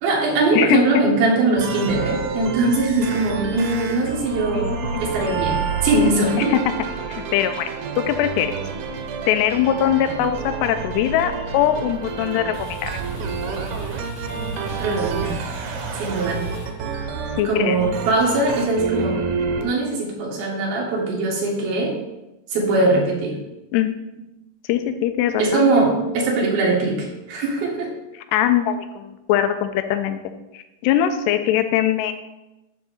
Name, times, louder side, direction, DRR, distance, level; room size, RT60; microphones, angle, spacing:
voice 1, 0.0-6.5 14.8-15.4 16.0-16.4 17.4-19.2 19.6-22.0 22.5-23.4 25.4-27.9, right 2 dB, 70° right, -1 dB, 3.4 m, -21 dB
sound 1, 1.6-19.7, right 5 dB, 90° right, 1.6 m, -29 dB
voice 2, 4.5-5.0 6.4-6.6 7.1-7.7 8.0-8.5 9.3-12.9 17.4-17.8 23.7-23.9 24.7-25.4 28.1-30.2 30.5-32.1, left 11 dB, 90° left, 9 dB, 2.7 m, -21 dB
sound 2, 12.3-17.4, right 1 dB, 60° left, 2.9 m, -37 dB
9.5 x 3.8 x 7.1 m, 0.97 s
omnidirectional pair, 4.6 m